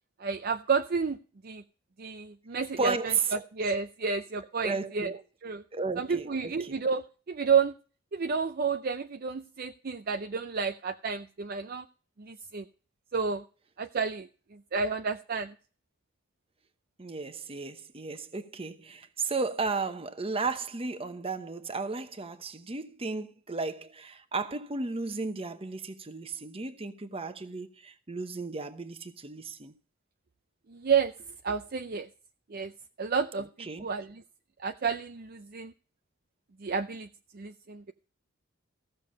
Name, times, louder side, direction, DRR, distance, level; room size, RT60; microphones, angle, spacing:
voice 1, 0.2-1.6 2.0-5.6 6.0-7.7 8.1-11.9 12.2-12.7 13.1-13.4 13.8-15.5 30.7-31.1 31.4-32.1 32.5-32.7 33.0-34.2 34.6-35.7 36.6-37.1 37.3-37.9, right 5 dB, 45° right, 0.5 m, -31 dB
voice 2, 2.8-3.2 4.6-5.1 5.7-6.8 17.0-29.7 33.7-33.9, right 4 dB, 25° right, 0.9 m, -34 dB
15.0 x 6.8 x 5.6 m
head